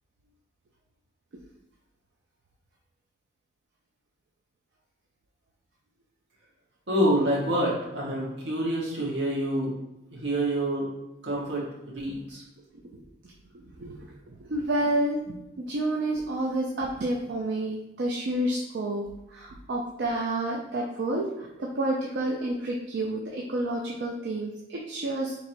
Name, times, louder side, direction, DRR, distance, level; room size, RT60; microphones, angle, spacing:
voice 1, 6.9-9.8 10.1-10.9 11.2-12.4, right 1 dB, 90° right, -4 dB, 1.3 m, -27 dB
voice 2, 13.5-14.0 14.3-19.0 19.3-25.3, right 1 dB, 70° right, -2 dB, 0.4 m, -29 dB
4.4 x 2.9 x 2.6 m, 0.92 s
head